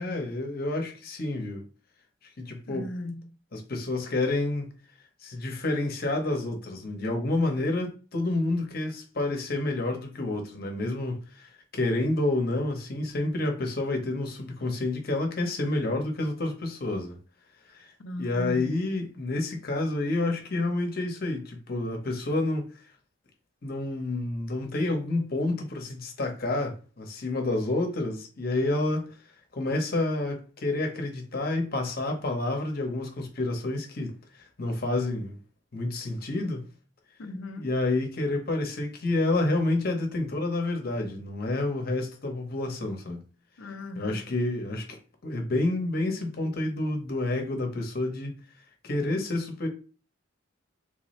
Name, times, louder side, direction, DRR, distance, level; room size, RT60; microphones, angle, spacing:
voice 1, 0.0-1.6 2.4-2.9 3.5-4.7 5.2-17.2 17.7-17.9 18.2-22.7 23.6-29.2 29.5-35.4 35.7-36.7 37.6-43.3 44.0-45.0 45.2-48.3 48.8-49.7, left 2 dB, 50° left, 0.9 m, -29 dB
voice 2, 2.7-3.3 18.0-18.7 37.2-37.7 43.6-44.3, left 1 dB, 65° left, 0.5 m, -38 dB
3.4 x 2.7 x 3.1 m
head